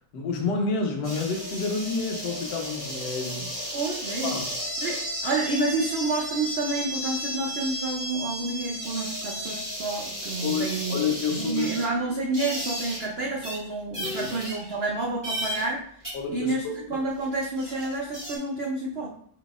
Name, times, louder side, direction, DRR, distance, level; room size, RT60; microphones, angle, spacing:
voice 1, 0.1-3.7 4.2-4.5 10.4-11.8 14.0-14.3 16.1-16.8, left 4 dB, 85° left, 3 dB, 1.4 m, -29 dB
sound 1, 1.0-13.1 13.4-13.6 13.9-14.9 15.2-15.7 16.0-16.1 17.1-17.2 17.4-18.4, equal, 15° right, 1.2 m, -34 dB
voice 2, 3.7-4.4 4.8-11.0 11.3-15.8 16.3-19.1, right 2 dB, 85° right, 0 dB, 0.5 m, -29 dB
4.4 x 3.9 x 2.4 m, 0.64 s
omnidirectional pair, 1.8 m